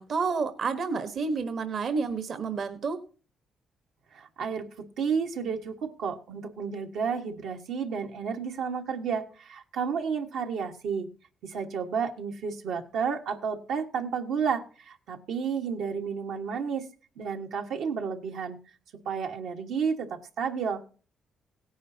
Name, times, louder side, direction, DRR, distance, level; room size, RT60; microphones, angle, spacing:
voice 1, 0.0-3.0, right 4 dB, 55° right, 10 dB, 1.2 m, -30 dB
voice 2, 4.1-11.1 11.4-16.9 17.2-18.6 19.0-20.8, right 6 dB, 80° right, 3 dB, 1.5 m, -31 dB
17.0 x 10.0 x 2.8 m, 0.37 s
cardioid pair, 90°, 0 cm